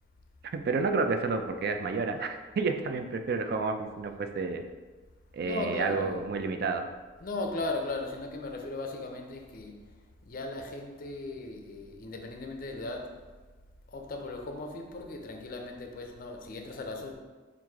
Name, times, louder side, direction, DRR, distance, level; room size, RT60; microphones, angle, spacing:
voice 1, 0.5-4.6 5.3-6.8, right 4 dB, 55° right, 6 dB, 0.4 m, -30 dB
voice 2, 5.4-6.2 7.2-9.8 10.2-13.2 13.9-17.1, left 2 dB, 50° left, 3 dB, 0.5 m, -37 dB
4.6 x 2.5 x 3.6 m, 1.3 s
head